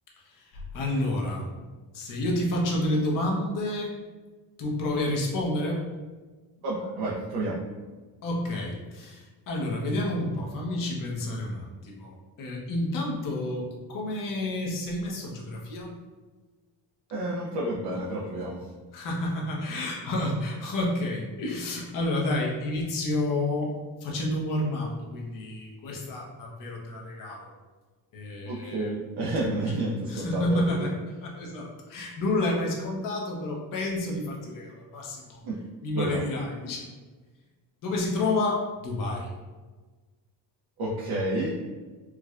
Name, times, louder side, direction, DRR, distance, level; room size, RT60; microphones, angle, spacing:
voice 1, 0.2-1.5 1.9-3.9 4.6-5.8 8.2-15.9 18.9-23.7 24.0-27.5 28.1-29.0 29.4-29.5 30.1-30.9 31.2-35.5 35.8-36.9 37.8-39.3, left 1 dB, 50° left, -2 dB, 0.8 m, -30 dB
voice 2, 6.6-7.6 17.1-18.7 28.5-30.9 35.4-35.5 35.9-36.2 40.8-41.6, right 1 dB, 65° right, -5 dB, 0.6 m, -30 dB
4.6 x 2.1 x 2.4 m, 1.3 s
cardioid pair, 175°, 42 cm